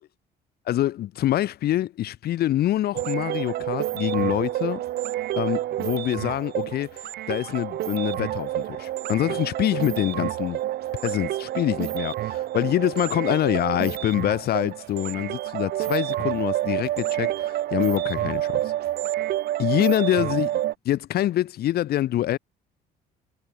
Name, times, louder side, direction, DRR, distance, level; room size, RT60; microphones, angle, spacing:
voice 1, 0.7-4.8 5.3-10.6 11.0-18.7 19.6-20.5 20.8-22.4, left 13 dB, 65° left, 5.7 m, -25 dB
sound 1, 2.9-20.7, right 14 dB, 70° right, 3.9 m, -28 dB
cardioid pair, 110°, 17 cm